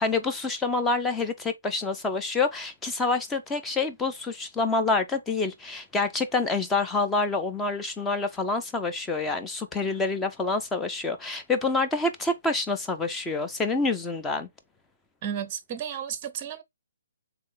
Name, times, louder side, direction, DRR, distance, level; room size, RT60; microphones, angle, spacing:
voice 1, 0.0-14.5, left 3 dB, 10° left, 0.6 m, -27 dB
voice 2, 15.2-16.6, right 9 dB, 30° right, 0.6 m, -33 dB
3.6 x 3.4 x 3.8 m
figure-of-eight pair, 135°, 0 cm